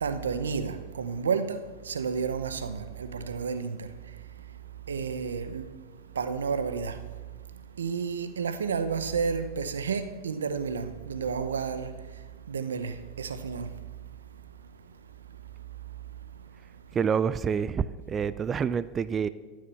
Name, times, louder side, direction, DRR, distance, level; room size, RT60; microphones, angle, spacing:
voice 1, 0.0-3.9 4.9-5.7 6.1-7.0 7.8-11.9 12.5-13.7, right 5 dB, 90° right, 0.8 m, -31 dB
voice 2, 17.0-19.3, right 7 dB, 30° right, 0.4 m, -27 dB
13.5 x 6.5 x 7.0 m
hypercardioid pair, 95°, 0 cm